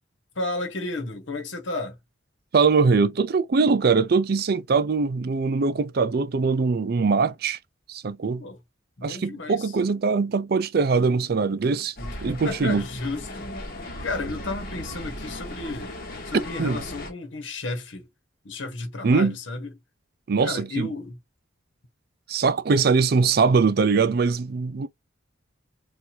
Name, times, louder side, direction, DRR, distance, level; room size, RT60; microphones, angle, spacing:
voice 1, 0.3-2.0 8.4-8.6 9.0-9.8 12.0-13.5 14.0-15.9 16.2-18.1 18.4-19.7 20.4-21.2, left 2 dB, 70° left, 1.2 m, -32 dB
voice 2, 2.5-7.6 7.9-8.4 9.0-11.9 12.2-12.8 16.6-16.8 19.0-19.3 20.3-20.9 22.3-24.9, right 4 dB, 50° right, 0.4 m, -22 dB
sound 1, 12.0-17.1, left 1 dB, 50° left, 1.2 m, -37 dB
4.4 x 2.5 x 2.7 m
head